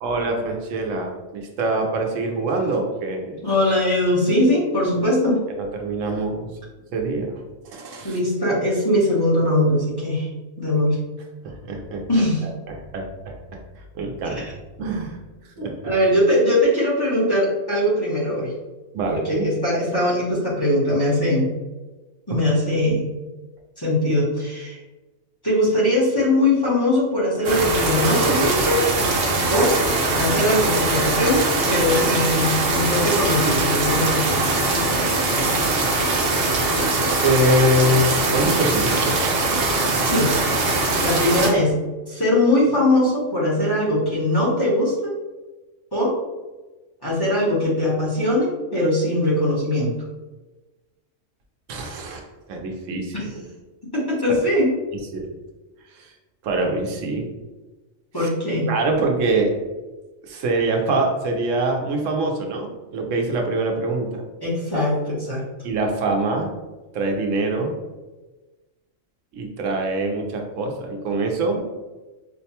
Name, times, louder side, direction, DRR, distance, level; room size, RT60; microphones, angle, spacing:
voice 1, 0.0-3.5 5.5-6.5 6.9-7.4 7.7-8.2 11.4-13.3 13.9-14.4 14.8-15.2 15.6-15.8 18.9-19.5 37.2-39.3 51.7-52.2 52.5-53.4 54.3-54.4 55.1-55.3 56.0-56.1 56.4-57.2 58.2-58.3 58.7-59.5 60.2-64.2 65.6-66.5 66.9-67.7 69.3-71.6, right 2 dB, 90° right, 2 dB, 1.0 m, -24 dB
voice 2, 3.4-5.4 8.0-10.3 10.6-11.0 12.1-12.4 14.2-14.5 15.6-18.5 19.1-21.5 22.3-23.1 23.8-24.8 25.4-28.8 29.5-29.7 30.2-34.4 40.0-40.3 41.0-41.8 42.1-45.1 45.9-46.1 47.0-49.9 53.1-53.3 53.9-54.7 58.1-58.7 64.4-65.5, left 1 dB, 20° left, -7 dB, 0.9 m, -21 dB
sound 1, 27.4-41.5, right 2 dB, 55° right, 0.8 m, -21 dB
4.6 x 2.2 x 2.8 m, 1.2 s
omnidirectional pair, 1.3 m